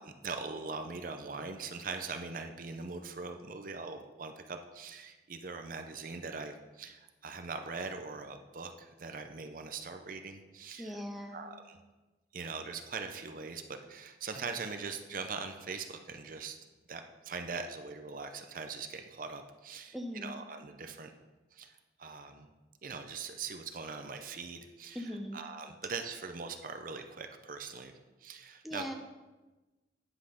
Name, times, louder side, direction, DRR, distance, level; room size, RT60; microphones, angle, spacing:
voice 1, 0.0-11.0 11.3-11.8 12.3-16.6 16.9-21.1 21.5-22.5 22.8-27.9 28.2-28.9, right 4 dB, 50° right, 7 dB, 0.6 m, -42 dB
voice 2, 10.8-11.5 19.9-20.4 24.9-25.4 28.6-28.9, equal, ahead, 2 dB, 0.7 m, -40 dB
9.8 x 5.8 x 4.9 m, 1.2 s
head